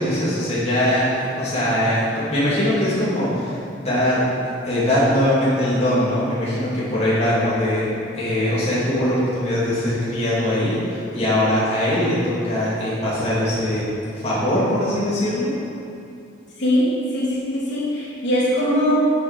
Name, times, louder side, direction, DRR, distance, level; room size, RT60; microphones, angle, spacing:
voice 1, 0.0-7.9 8.1-13.9 14.1-15.5, left 1 dB, 35° left, -9 dB, 2.4 m, -21 dB
voice 2, 16.6-18.9, left 1 dB, 65° left, -7 dB, 2.7 m, -21 dB
10.0 x 7.2 x 5.2 m, 2.5 s
head